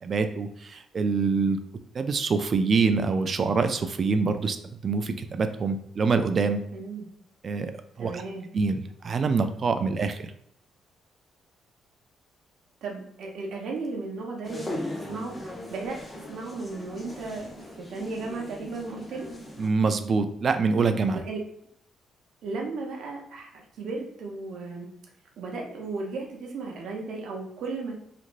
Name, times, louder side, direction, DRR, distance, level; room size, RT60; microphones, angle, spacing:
voice 1, 0.0-1.6 1.9-4.6 4.8-6.6 7.4-7.7 8.0-8.2 8.5-10.3 19.6-21.2, right 4 dB, 45° right, 9 dB, 0.3 m, -25 dB
voice 2, 6.7-7.1 8.0-8.5 12.8-19.3 21.1-21.4 22.4-24.9 25.4-27.9, right 3 dB, 75° right, 0 dB, 0.7 m, -35 dB
sound 1, 14.4-19.7, left 1 dB, 20° left, 0.7 m, -39 dB
3.0 x 2.5 x 2.5 m, 0.73 s
cardioid pair, 90°, 0 cm